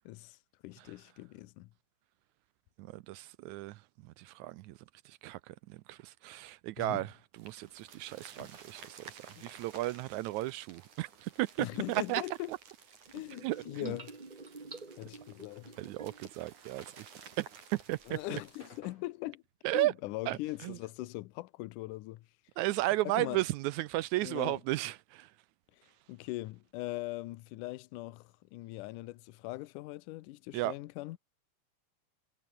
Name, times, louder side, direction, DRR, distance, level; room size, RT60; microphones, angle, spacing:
voice 1, 0.1-0.4 0.6-1.7 6.8-7.0 8.4-8.5 9.4-9.5 11.6-12.5 13.1-14.1 15.0-15.7 18.1-19.4 19.7-22.3 23.0-23.4 24.2-24.6 25.7-31.2, left 19 dB, 75° left, 2.2 m, -41 dB
voice 2, 2.8-4.8 5.0-12.2 12.5-12.6 13.4-13.9 15.8-17.1 17.4-17.5 17.7-18.4 19.6-19.9 20.3-20.8 22.6-25.3 30.5-30.7, right 17 dB, 80° right, 1.7 m, -34 dB
sound 1, 7.3-18.8, right 6 dB, 65° right, 4.8 m, -54 dB
sound 2, 7.6-7.7 10.2-10.3 11.6-12.4 13.1-16.4 16.8-17.3 17.9-18.4, right 3 dB, 20° right, 1.2 m, -50 dB
sound 3, 17.2-21.9 22.2-24.2, left 3 dB, 50° left, 8.5 m, -61 dB
omnidirectional pair, 3.9 m